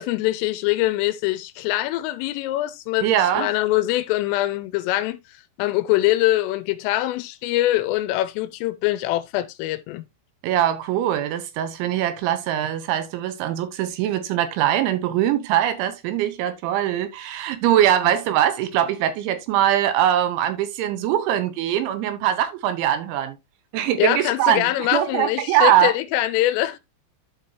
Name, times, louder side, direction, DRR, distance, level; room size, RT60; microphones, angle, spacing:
voice 1, 0.0-3.1 3.4-5.2 5.6-10.0 24.0-26.8, left 16 dB, 85° left, 3.3 m, -23 dB
voice 2, 3.0-3.5 10.4-23.4 23.7-25.9, right 11 dB, 80° right, 3.1 m, -22 dB
12.5 x 5.0 x 2.7 m
omnidirectional pair, 5.8 m